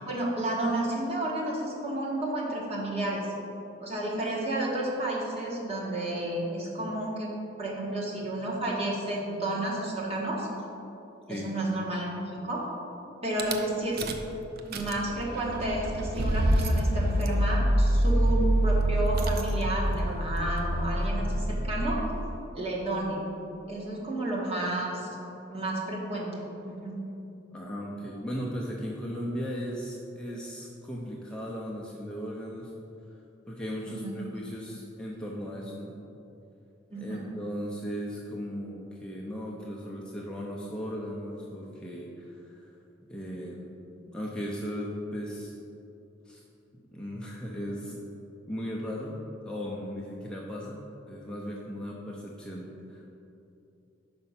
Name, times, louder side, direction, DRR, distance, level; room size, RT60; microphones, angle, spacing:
voice 1, 0.0-3.3 3.8-7.3 7.6-10.5 11.3-12.7 13.2-14.0 14.7-22.0 22.5-23.2 23.7-25.1 25.5-27.0 33.9-34.2 36.9-37.2, right 1 dB, 35° right, -4 dB, 1.3 m, -31 dB
Rattle / Car / Engine starting, 13.4-13.6 14.0-14.3 14.6-22.3, right 1 dB, 55° right, 0.5 m, -26 dB
voice 2, 27.5-32.7 33.5-35.9 36.9-42.8 43.1-43.8 44.1-45.5 46.3-46.4 46.7-47.9 48.5-49.2 49.4-50.8 51.1-53.1, equal, 5° left, -4 dB, 0.6 m, -37 dB
5.4 x 5.2 x 5.7 m, 2.8 s
head